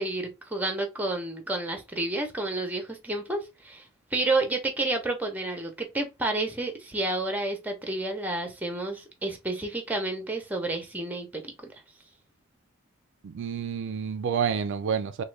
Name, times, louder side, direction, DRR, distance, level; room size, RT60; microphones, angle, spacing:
voice 1, 0.0-11.7, right 2 dB, 10° right, 0.7 m, -30 dB
voice 2, 13.2-15.2, right 7 dB, 60° right, 0.3 m, -29 dB
3.6 x 2.2 x 3.2 m
head